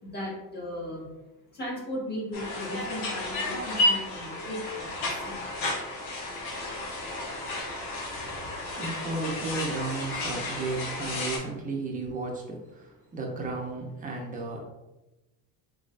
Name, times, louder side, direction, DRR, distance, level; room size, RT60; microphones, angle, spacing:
voice 1, 0.0-1.1 1.6-5.4, left 1 dB, 25° left, -4 dB, 1.5 m, -36 dB
sound 1, 2.3-11.4, left 1 dB, 80° left, 1.3 m, -32 dB
voice 2, 8.1-14.6, right 3 dB, 20° right, 0 dB, 0.8 m, -34 dB
3.7 x 3.1 x 2.6 m, 1.0 s
supercardioid pair, 105°, 40 cm